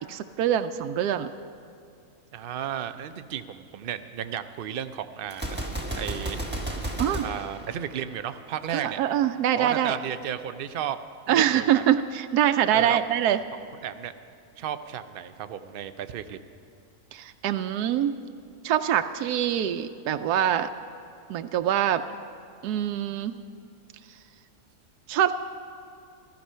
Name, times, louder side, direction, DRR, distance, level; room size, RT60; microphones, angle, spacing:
voice 1, 0.1-1.3 7.0-7.2 8.7-9.9 11.3-13.4 17.1-18.1 18.6-20.7 21.3-22.0 22.6-23.4 25.1-25.3, right 10 dB, 90° right, 9 dB, 1.1 m, -24 dB
voice 2, 2.3-6.4 7.2-9.0 9.6-11.0 11.3-11.8 12.7-13.0 13.3-13.4 13.8-14.1 14.6-16.4, right 9 dB, 70° right, 10 dB, 0.5 m, -34 dB
Gunshot gunfire, 5.3-8.4, right 1 dB, 5° right, 1.3 m, -33 dB
14.5 x 14.5 x 5.6 m, 2.5 s
omnidirectional pair, 1.6 m